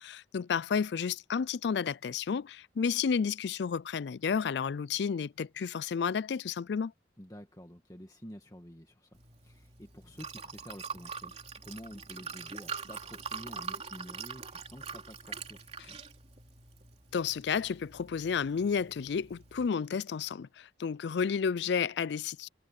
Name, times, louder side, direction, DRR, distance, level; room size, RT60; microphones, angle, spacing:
voice 1, 0.0-6.9 17.1-22.5, left 6 dB, 65° left, 0.4 m, -31 dB
voice 2, 7.2-11.4 11.6-16.0, equal, 20° left, 1.8 m, -49 dB
Liquid, 9.1-19.7, right 5 dB, 35° right, 3.3 m, -44 dB
head